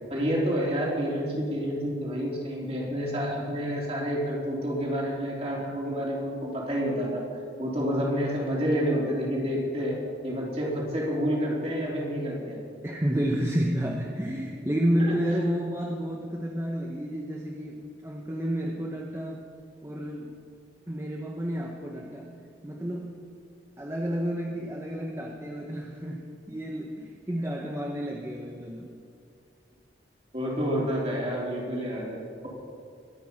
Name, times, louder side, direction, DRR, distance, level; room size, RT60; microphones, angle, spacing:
voice 1, 0.1-7.2 7.6-10.0 10.2-12.6 15.0-15.1 30.3-32.5, equal, 35° right, -4 dB, 3.7 m, -29 dB
voice 2, 12.8-19.5 19.8-20.3 20.9-22.3 22.6-23.2 23.8-28.9, equal, 15° right, 0 dB, 0.9 m, -30 dB
22.0 x 9.1 x 5.8 m, 2.3 s
head